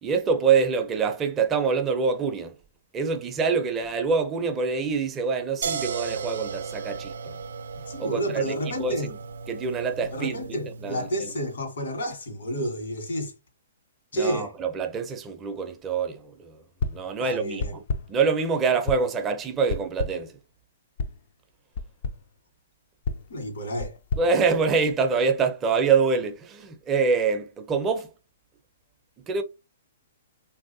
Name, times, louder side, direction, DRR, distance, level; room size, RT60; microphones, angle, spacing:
voice 1, 0.0-2.5 2.9-7.4 8.0-9.0 9.5-10.4 10.7-11.3 14.1-16.6 16.9-17.8 18.1-20.4 24.2-28.1 29.3-29.4, right 5 dB, 20° right, 0.5 m, -25 dB
sound 1, 5.6-11.4, right 5 dB, 80° right, 0.4 m, -35 dB
voice 2, 7.9-9.1 10.1-13.3 14.1-14.5 17.2-17.8 23.3-24.0, equal, 80° left, 1.4 m, -30 dB
sound 2, 16.8-17.2 17.6-18.2 18.9-19.2 19.7-20.3 21.0-21.2 21.7-22.3 23.0-25.1, left 4 dB, 55° left, 0.4 m, -32 dB
3.2 x 2.7 x 2.6 m
hypercardioid pair, 145°, 0 cm